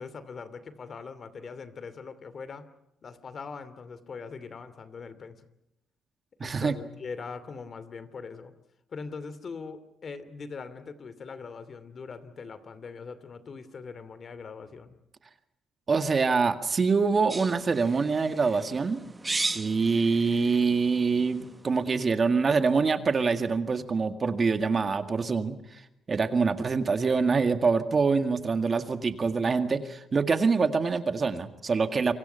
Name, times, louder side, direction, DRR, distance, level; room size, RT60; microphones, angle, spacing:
voice 1, 0.0-2.7 3.0-5.4 6.4-8.5 8.9-15.0, left 5 dB, 45° left, 14 dB, 2.6 m, -41 dB
voice 2, 6.4-6.7 15.9-19.0 19.3-25.8 26.1-32.1, right 4 dB, 35° right, 9 dB, 2.0 m, -25 dB
sound 1, 17.3-21.8, right 2 dB, 20° right, 1.2 m, -37 dB
28.0 x 24.5 x 5.7 m, 0.85 s
cardioid pair, 90°, 0 cm